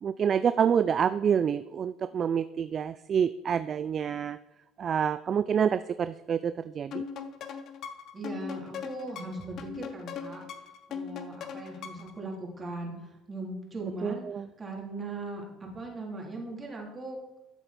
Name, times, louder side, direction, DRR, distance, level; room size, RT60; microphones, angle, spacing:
voice 1, 0.0-4.4 4.8-7.0 14.0-14.5, right 7 dB, 45° right, 13 dB, 0.4 m, -27 dB
sound 1, 6.9-12.2, left 6 dB, 55° left, 1.1 m, -39 dB
voice 2, 8.1-10.4 10.9-14.3 14.6-17.4, right 2 dB, 30° right, -1 dB, 3.6 m, -39 dB
13.0 x 7.9 x 4.4 m, 0.95 s
hypercardioid pair, 70°, 0 cm